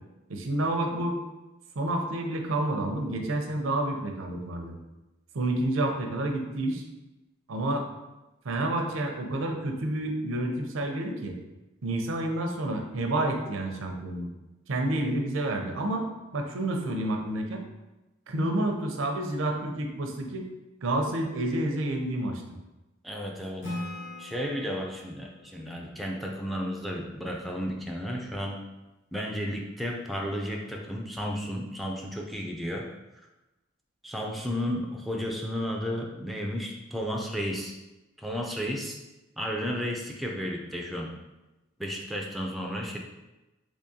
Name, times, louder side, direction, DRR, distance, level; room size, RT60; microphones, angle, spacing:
voice 1, 0.3-1.2 1.8-4.7 5.3-6.8 7.5-7.9 8.4-11.3 11.8-14.3 14.7-16.0 16.3-17.6 18.3-20.4 20.8-22.4, right 1 dB, 85° right, 3 dB, 0.5 m, -29 dB
voice 2, 23.0-23.6 24.2-28.6 29.1-32.9 34.0-37.7 38.2-39.0 39.4-41.1 41.8-43.0, equal, ahead, 0 dB, 0.3 m, -33 dB
Acoustic guitar / Strum, 23.6-27.1, left 1 dB, 65° left, 1.0 m, -41 dB
3.6 x 3.1 x 2.7 m, 1.0 s
head